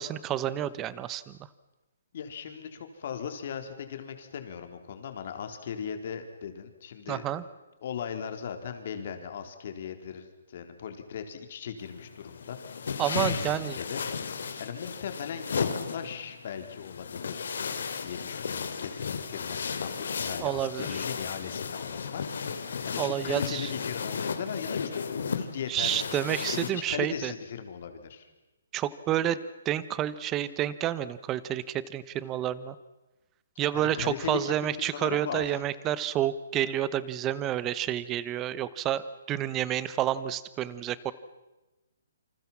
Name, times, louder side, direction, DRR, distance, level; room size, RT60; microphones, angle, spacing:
voice 1, 0.0-1.4 7.1-7.4 13.0-13.8 20.4-21.0 23.0-23.7 25.7-27.3 28.7-29.4 29.6-32.7 33.6-41.1, right 12 dB, 15° right, 17 dB, 1.0 m, -29 dB
voice 2, 2.1-7.2 7.8-13.0 13.3-14.0 14.6-17.6 18.0-26.1 26.5-28.3 33.7-35.6, left 7 dB, 45° left, 6 dB, 3.8 m, -38 dB
sound 1, 11.8-26.7, left 6 dB, 65° left, 3.3 m, -34 dB
28.0 x 26.5 x 7.4 m, 1.1 s
hypercardioid pair, 165°, 0 cm